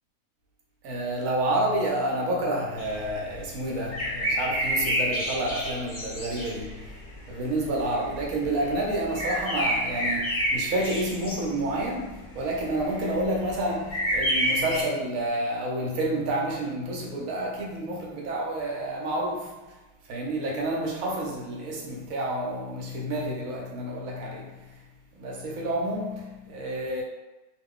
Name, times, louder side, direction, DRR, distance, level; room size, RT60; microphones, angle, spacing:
voice 1, 0.8-19.8 20.1-24.8 25.1-27.0, right 1 dB, 65° right, 1.1 m, -29 dB
sound 1, 2.8-14.8, equal, 40° left, 0.7 m, -29 dB
2.5 x 2.4 x 3.6 m
omnidirectional pair, 1.7 m